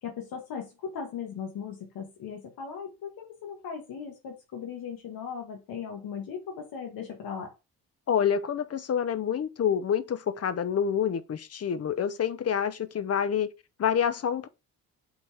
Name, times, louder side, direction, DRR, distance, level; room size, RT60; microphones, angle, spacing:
voice 1, 0.0-7.5, left 7 dB, 75° left, 1.7 m, -38 dB
voice 2, 8.1-13.5 13.8-14.5, left 8 dB, 40° left, 0.8 m, -27 dB
7.9 x 4.0 x 3.5 m
cardioid pair, 85°, 37 cm